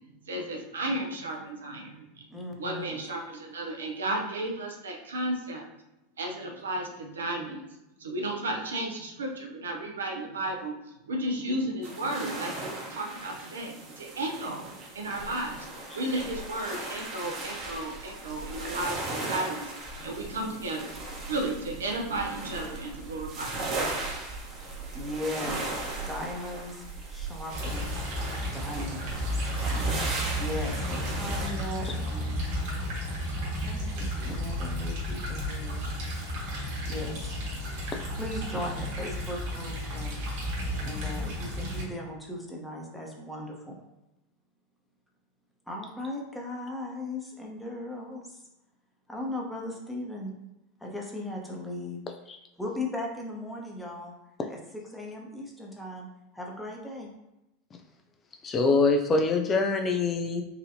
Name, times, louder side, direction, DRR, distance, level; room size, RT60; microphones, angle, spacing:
voice 1, 0.3-2.2 2.6-5.7 6.2-7.7 8.0-10.8 11.1-14.7 14.9-15.7 15.9-19.7 20.0-20.9 21.3-23.9, right 1 dB, 75° right, 1 dB, 0.6 m, -33 dB
voice 2, 2.3-3.0 24.9-26.8 27.1-28.0 28.5-29.4 30.4-32.4 33.6-35.8 36.9-37.4 38.2-40.2 40.8-43.8 45.7-48.5 49.1-50.4 50.8-52.0 52.6-54.1 54.5-56.1 56.3-57.1, left 1 dB, 5° left, -1 dB, 0.9 m, -37 dB
sound 1, 11.8-31.5, right 2 dB, 40° right, 0.9 m, -37 dB
sound 2, 27.5-41.8, equal, 60° right, 1.4 m, -33 dB
voice 3, 58.4-60.4, left 3 dB, 25° left, 4 dB, 0.4 m, -24 dB
4.0 x 2.6 x 2.7 m, 0.92 s
figure-of-eight pair, 85°, 0 cm